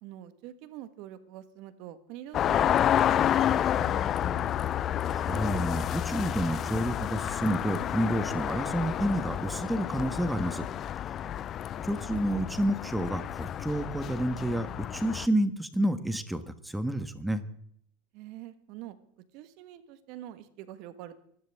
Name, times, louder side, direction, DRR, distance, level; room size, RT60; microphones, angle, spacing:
voice 1, 0.0-4.6 11.2-11.5 18.1-21.2, right 13 dB, 55° right, 12 dB, 1.5 m, -45 dB
sound 1, 2.3-15.3, left 10 dB, 35° left, 0.5 m, -30 dB
voice 2, 5.1-10.6 11.8-17.4, right 1 dB, 5° right, 11 dB, 1.4 m, -29 dB
24.5 x 13.5 x 3.6 m, 0.67 s
hypercardioid pair, 95°, 0 cm